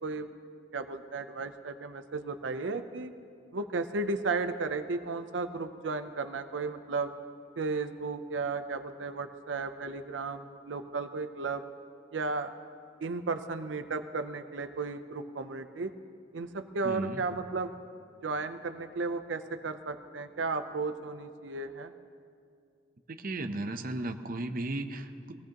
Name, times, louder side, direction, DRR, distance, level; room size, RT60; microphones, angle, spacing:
voice 1, 0.0-0.3 0.7-3.1 3.5-7.1 7.6-11.6 12.1-12.5 13.0-15.9 16.3-17.7 18.2-21.9, right 3 dB, 90° right, 9 dB, 0.6 m, -34 dB
voice 2, 16.8-17.2 23.1-25.3, right 2 dB, 50° right, 7 dB, 0.7 m, -35 dB
22.0 x 17.0 x 2.9 m, 2.3 s
head